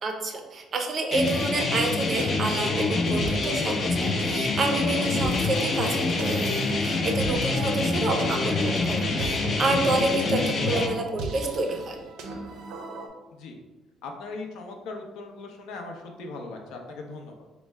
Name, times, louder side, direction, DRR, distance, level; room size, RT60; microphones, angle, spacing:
voice 1, 0.0-12.0, right 2 dB, 35° right, 4 dB, 0.4 m, -29 dB
sound 1, 1.1-10.9, left 3 dB, 35° left, 0.4 m, -26 dB
sound 2, 2.0-13.1, right 3 dB, 90° right, 0.5 m, -38 dB
voice 2, 14.0-17.5, left 3 dB, 80° left, 3 dB, 0.5 m, -39 dB
4.4 x 2.0 x 3.2 m, 1.1 s
cardioid pair, 160°, 0 cm